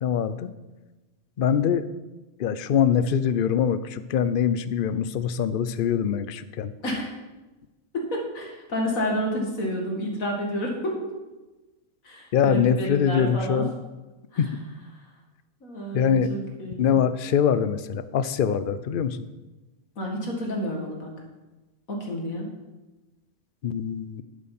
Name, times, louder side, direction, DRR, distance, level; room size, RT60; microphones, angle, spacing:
voice 1, 0.0-0.5 1.4-1.9 2.4-6.7 12.3-13.7 14.4-14.5 15.9-16.3 16.8-19.3 23.6-24.2, left 8 dB, 55° left, 13 dB, 0.6 m, -23 dB
voice 2, 7.9-11.0 12.0-13.6 14.3-14.4 15.6-17.0 20.0-21.1 21.9-22.5, equal, 75° left, 0 dB, 2.6 m, -30 dB
11.0 x 7.5 x 6.0 m, 1.1 s
omnidirectional pair, 1.4 m